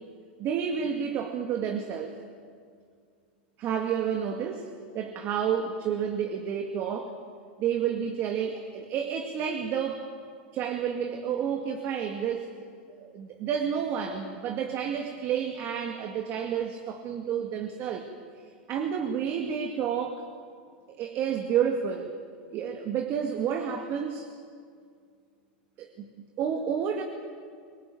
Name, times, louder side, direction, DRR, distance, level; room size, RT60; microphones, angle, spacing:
voice 1, 0.4-2.2 3.6-4.6 4.9-7.1 7.6-10.0 10.5-12.7 13.0-18.0 18.7-20.2 20.9-22.1 22.5-24.3 25.8-27.0, right 8 dB, 45° right, 4 dB, 2.2 m, -30 dB
25.0 x 17.5 x 9.4 m, 2.1 s
hypercardioid pair, 105°, 5 cm